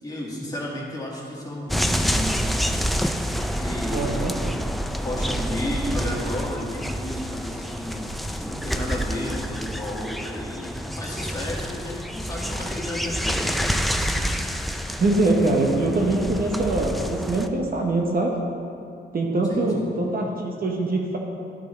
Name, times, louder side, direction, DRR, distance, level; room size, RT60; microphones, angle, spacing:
voice 1, 0.0-2.6 3.5-4.3 5.0-13.5 19.5-19.9, left 1 dB, 20° left, -4 dB, 1.7 m, -33 dB
sound 1, 1.7-17.5, equal, ahead, 0.3 m, -28 dB
voice 2, 3.9-4.3 15.0-18.4 19.1-21.2, right 2 dB, 50° right, 0 dB, 0.9 m, -23 dB
12.0 x 4.7 x 3.2 m, 2.5 s
cardioid pair, 90°, 19 cm